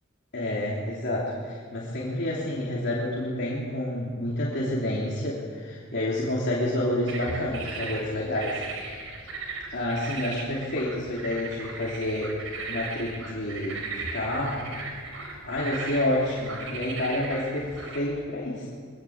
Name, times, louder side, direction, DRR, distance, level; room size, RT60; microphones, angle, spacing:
voice 1, 0.3-8.6 9.7-12.3 12.7-14.7 15.4-18.7, left 1 dB, 55° left, -6 dB, 3.3 m, -29 dB
sound 1, 7.1-18.0, right 3 dB, 85° right, 3.9 m, -37 dB
22.5 x 18.5 x 7.4 m, 2.1 s
head